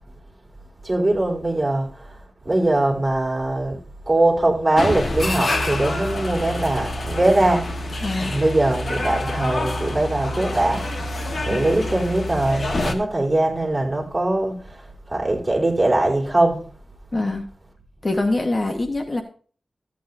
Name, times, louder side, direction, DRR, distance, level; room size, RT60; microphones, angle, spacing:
voice 1, 0.8-1.9 2.4-3.8 4.1-7.7 8.2-10.8 11.4-14.6 15.1-16.6, right 2 dB, 25° right, 3.2 m, -21 dB
sound 1, 4.8-12.9, left 1 dB, 60° left, 1.3 m, -27 dB
voice 2, 8.0-8.4 11.3-11.7 17.1-17.4 18.0-19.2, left 2 dB, 35° left, 1.0 m, -24 dB
14.5 x 8.6 x 2.6 m
wide cardioid pair, 90°, 0 cm